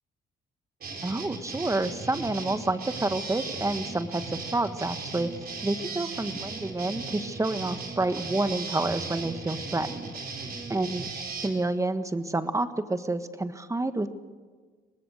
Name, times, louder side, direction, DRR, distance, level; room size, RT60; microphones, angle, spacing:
sound 1, 0.8-11.5, right 4 dB, 50° right, 4.1 m, -37 dB
voice 1, 1.0-5.3 5.6-10.1 10.7-11.1 11.4-14.1, right 2 dB, 15° right, 10 dB, 1.4 m, -29 dB
24.5 x 19.5 x 6.5 m, 1.5 s
cardioid pair, 90°, 20 cm